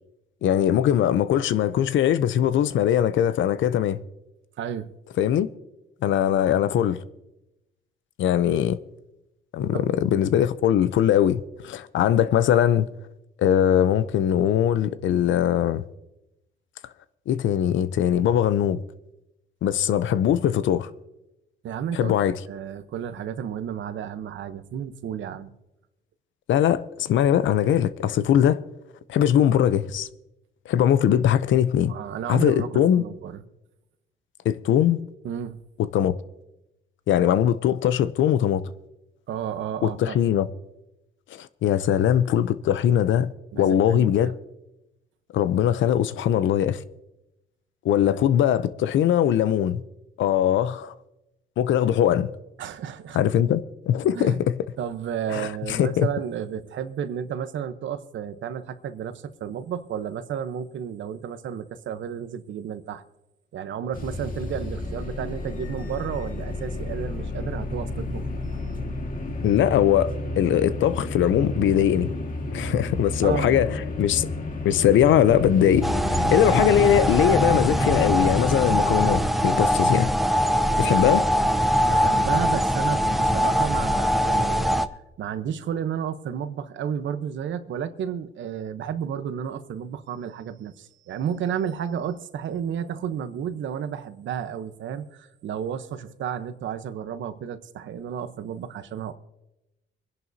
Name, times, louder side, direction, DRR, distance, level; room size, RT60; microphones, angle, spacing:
voice 1, 0.4-4.0 5.2-5.5 6.0-7.0 8.2-8.8 9.5-12.9 13.4-15.8 17.3-18.8 19.6-20.9 21.9-22.4 26.5-28.6 29.1-30.1 30.7-31.9 32.3-33.0 34.4-35.0 35.9-36.2 37.1-38.6 39.8-40.5 41.3-44.3 45.3-46.8 47.8-49.8 50.2-50.9 51.6-52.3 53.1-54.6 55.3-56.1 69.4-72.1 72.5-74.3 74.6-75.8 76.1-80.1 80.8-81.2, left 10 dB, 75° left, 0.7 m, -21 dB
voice 2, 4.6-4.9 9.7-9.8 21.6-22.1 22.5-25.5 31.9-33.4 35.2-35.6 39.3-40.2 43.5-44.4 52.6-53.2 54.1-54.4 54.8-63.0 63.5-68.3 73.2-73.8 80.8-81.2 81.8-84.8 85.2-99.1, right 8 dB, 70° right, 1.0 m, -32 dB
sound 1, 63.9-79.3, left 2 dB, 45° left, 1.8 m, -30 dB
sound 2, 75.8-84.9, equal, ahead, 0.6 m, -22 dB
24.5 x 11.0 x 2.7 m
cardioid pair, 90°, 20 cm